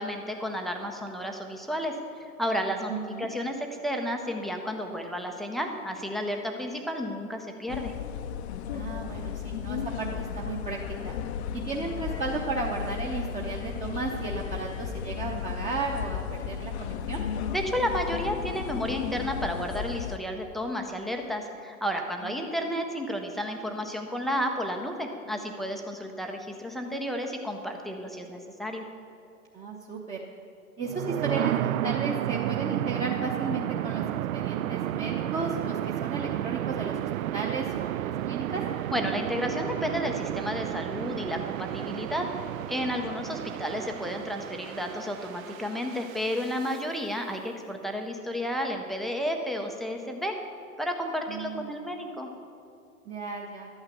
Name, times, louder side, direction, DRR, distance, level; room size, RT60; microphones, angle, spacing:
voice 1, 0.0-2.9 3.2-7.9 17.5-28.9 38.9-42.3 42.7-50.4 50.8-52.3, equal, ahead, 3 dB, 0.4 m, -32 dB
voice 2, 2.9-3.3 8.7-11.2 11.5-17.2 22.2-22.4 29.5-30.2 30.8-34.0 34.3-38.6 51.3-51.9 53.0-53.7, right 3 dB, 15° right, -2 dB, 0.8 m, -34 dB
sound 1, 7.7-20.2, left 8 dB, 50° left, 0.6 m, -34 dB
sound 2, 30.8-46.8, right 13 dB, 70° right, 0.5 m, -32 dB
11.5 x 8.9 x 6.9 m, 2.6 s
hypercardioid pair, 120°, 44 cm